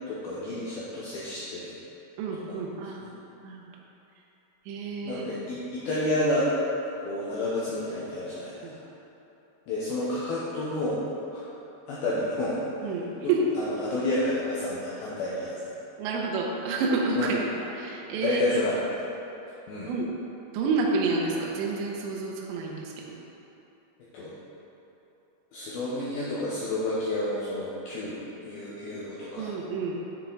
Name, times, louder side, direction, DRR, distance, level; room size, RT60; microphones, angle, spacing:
voice 1, 0.1-1.7 2.5-2.6 3.0-3.1 5.0-6.5 7.0-8.8 9.7-11.0 11.3-11.5 11.9-15.7 17.2-17.3 18.2-18.7 19.7-19.9 24.1-24.3 25.5-29.5, left 1 dB, 75° left, -8 dB, 2.2 m, -30 dB
voice 2, 2.2-3.1 3.4-3.6 4.7-5.5 8.6-8.8 12.8-13.5 16.0-17.5 17.8-18.6 19.9-20.1 20.5-23.2 29.4-30.0, right 3 dB, 80° right, -1 dB, 2.9 m, -29 dB
8.1 x 6.6 x 3.8 m, 3.0 s
omnidirectional pair, 5.4 m